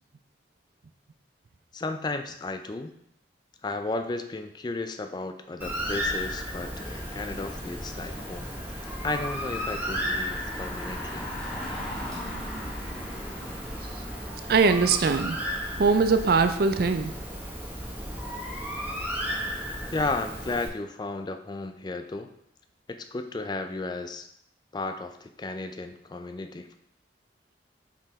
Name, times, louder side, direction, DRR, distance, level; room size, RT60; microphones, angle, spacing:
voice 1, 1.7-2.9 3.6-11.3 19.9-22.3 22.9-24.3 24.7-26.7, left 3 dB, 25° left, 8 dB, 0.3 m, -34 dB
Bird, 5.6-20.7, equal, 10° right, 1.0 m, -34 dB
Engine, 6.7-14.6, left 1 dB, 5° left, 1.5 m, -41 dB
voice 2, 14.5-15.4 15.8-17.2, right 4 dB, 55° right, 9 dB, 0.4 m, -21 dB
5.7 x 4.9 x 3.5 m, 0.74 s
head